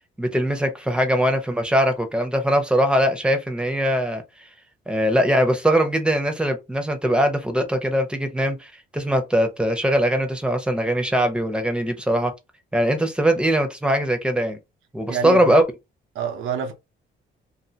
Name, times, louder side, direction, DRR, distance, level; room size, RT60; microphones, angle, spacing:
voice 1, 0.2-4.2 4.9-12.3 12.7-14.6 14.9-15.6, equal, 5° right, 0.8 m, -21 dB
voice 2, 15.1-15.6 16.1-16.7, right 7 dB, 80° right, 0.7 m, -27 dB
2.6 x 2.6 x 2.7 m
cardioid pair, 90°, 20 cm